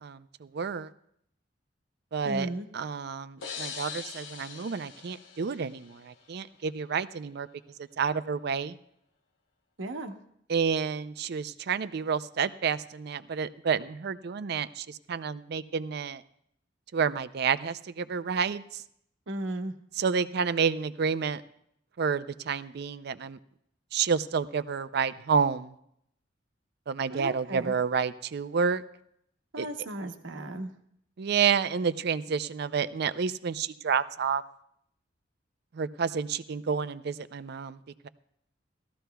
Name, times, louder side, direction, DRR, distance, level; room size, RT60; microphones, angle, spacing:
voice 1, 0.0-0.9 2.1-7.5 7.8-8.8 10.5-16.2 16.9-18.8 20.0-21.4 22.0-23.4 23.9-25.7 26.9-28.8 29.6-29.7 31.2-34.4 35.7-37.8, right 6 dB, 60° right, 14 dB, 0.4 m, -29 dB
voice 2, 2.2-2.7 9.8-10.2 19.3-19.7 27.1-27.7 29.5-30.7, right 1 dB, 85° right, 6 dB, 1.0 m, -35 dB
sound 1, 3.4-6.2, left 6 dB, 90° left, 1.0 m, -41 dB
18.0 x 13.5 x 2.3 m, 0.72 s
head